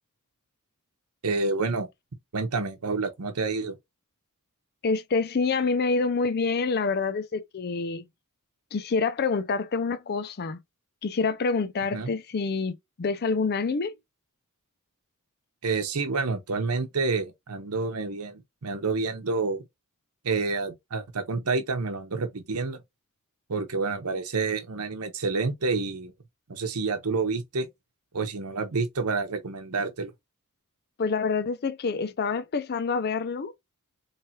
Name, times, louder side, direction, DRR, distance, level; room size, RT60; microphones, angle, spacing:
voice 1, 1.2-1.9 2.3-3.7 11.9-12.1 15.6-19.6 20.2-22.8 23.5-26.1 26.5-27.7 28.1-30.1, right 4 dB, 85° right, 0.9 m, -28 dB
voice 2, 4.8-8.0 8.7-10.6 11.0-13.9 31.0-33.5, left 4 dB, 45° left, 0.5 m, -27 dB
4.4 x 3.3 x 2.8 m
head